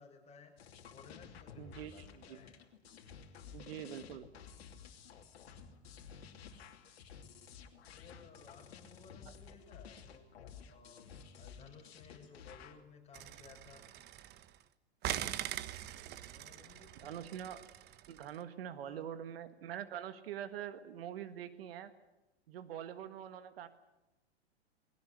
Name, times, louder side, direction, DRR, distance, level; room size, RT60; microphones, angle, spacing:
voice 1, 0.0-2.6 7.9-10.2 10.6-13.8 16.3-17.2 18.8-19.0, left 5 dB, 20° left, 1 dB, 6.6 m, -58 dB
sound 1, 0.6-12.8, left 7 dB, 65° left, 2.9 m, -53 dB
voice 2, 1.6-2.4 3.5-4.3 17.0-17.6 18.1-21.9 22.5-23.7, right 10 dB, 60° right, 11 dB, 1.7 m, -44 dB
sound 2, 13.1-14.6 15.0-18.3, right 13 dB, 30° right, 1.1 m, -42 dB
20.0 x 18.0 x 9.9 m, 0.98 s
hypercardioid pair, 110°, 33 cm